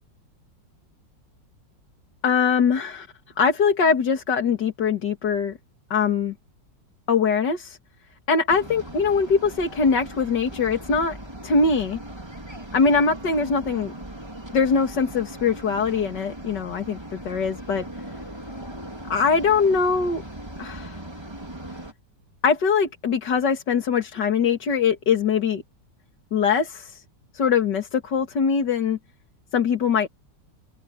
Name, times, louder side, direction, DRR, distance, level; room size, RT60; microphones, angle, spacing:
voice 1, 2.2-3.1 3.4-5.6 5.9-6.3 7.1-7.8 8.3-11.2 11.4-12.0 12.7-13.9 14.5-17.9 19.1-20.2 20.6-21.0 22.4-25.6 26.3-27.0 27.3-29.0 29.5-30.1, left 5 dB, 65° left, 2.7 m, -22 dB
sound 1, 8.5-21.9, right 1 dB, 15° right, 2.9 m, -39 dB
open air
omnidirectional pair, 2.0 m